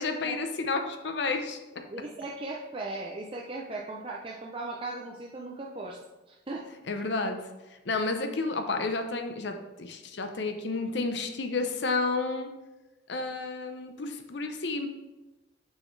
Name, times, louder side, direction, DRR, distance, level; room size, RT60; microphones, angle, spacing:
voice 1, 0.0-1.6 6.9-12.5 13.1-14.9, left 3 dB, 60° left, 6 dB, 0.6 m, -31 dB
voice 2, 1.9-6.0 6.3-6.7, right 2 dB, 25° right, -2 dB, 0.5 m, -37 dB
6.5 x 6.3 x 3.2 m, 1.1 s
head